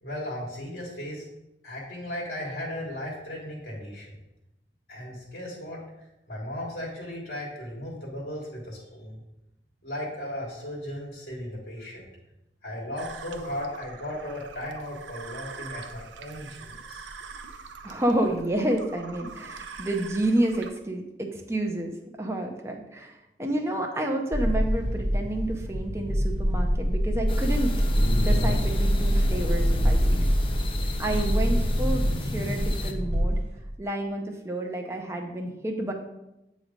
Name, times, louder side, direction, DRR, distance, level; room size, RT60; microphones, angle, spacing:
voice 1, 0.0-1.3 1.6-4.1 4.9-5.8 6.3-9.2 9.8-12.0 12.6-17.1, left 1 dB, 70° left, -5 dB, 1.5 m, -36 dB
sound 1, 13.0-20.7, right 5 dB, 85° right, 0.5 m, -43 dB
voice 2, 17.8-27.7 28.2-30.0 31.0-33.4 33.8-35.9, right 1 dB, 15° right, 2 dB, 0.6 m, -29 dB
sound 2, 24.3-33.7, equal, 40° right, 1.1 m, -24 dB
sound 3, 27.3-32.9, left 2 dB, 30° left, 0.5 m, -35 dB
8.4 x 3.1 x 5.1 m, 0.91 s
head